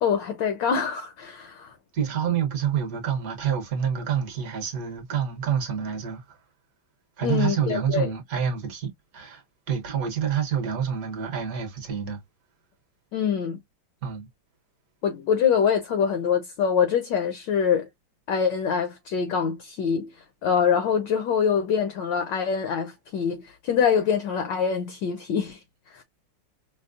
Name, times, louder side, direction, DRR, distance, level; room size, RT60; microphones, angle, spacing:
voice 1, 0.0-1.8 7.2-8.1 13.1-13.6 15.0-17.9 18.3-26.0, left 7 dB, 70° left, 1.2 m, -25 dB
voice 2, 1.9-6.4 7.2-12.2 14.0-14.3, right 8 dB, 50° right, 1.2 m, -28 dB
5.2 x 2.0 x 2.4 m
omnidirectional pair, 2.4 m